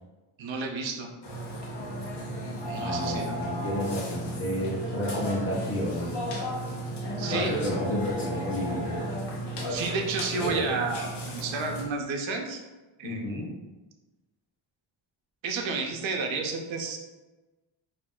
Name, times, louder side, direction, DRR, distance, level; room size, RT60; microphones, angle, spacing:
voice 1, 0.4-1.1 2.7-3.4 7.2-7.5 9.7-12.6 13.0-13.4 15.4-17.0, right 4 dB, 70° right, 3 dB, 0.6 m, -31 dB
Burping eructation, 1.2-11.8, right 1 dB, 55° left, 0.8 m, -33 dB
voice 2, 2.8-6.3 7.3-9.0 13.0-13.5, left 1 dB, 30° left, -4 dB, 0.8 m, -31 dB
2.5 x 2.0 x 3.6 m, 1.2 s
cardioid pair, 80°, 48 cm